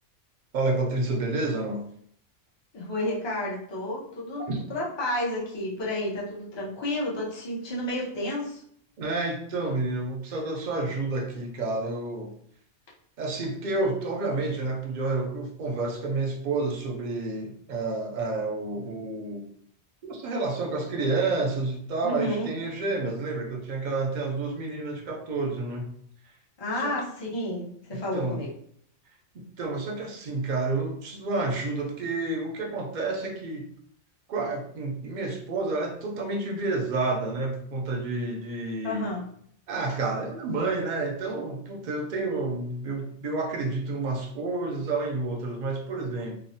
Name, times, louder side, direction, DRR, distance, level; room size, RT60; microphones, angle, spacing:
voice 1, 0.5-1.8 4.5-4.6 9.0-12.4 13.2-19.5 20.0-25.9 26.8-27.0 27.9-28.4 29.3-33.7 34.3-39.1 39.7-46.4, right 3 dB, 55° right, 1 dB, 0.5 m, -30 dB
voice 2, 2.7-8.6 22.0-22.5 26.6-28.5 38.8-39.2, left 1 dB, 30° left, -4 dB, 0.5 m, -31 dB
3.0 x 2.0 x 2.6 m, 0.65 s
omnidirectional pair, 1.3 m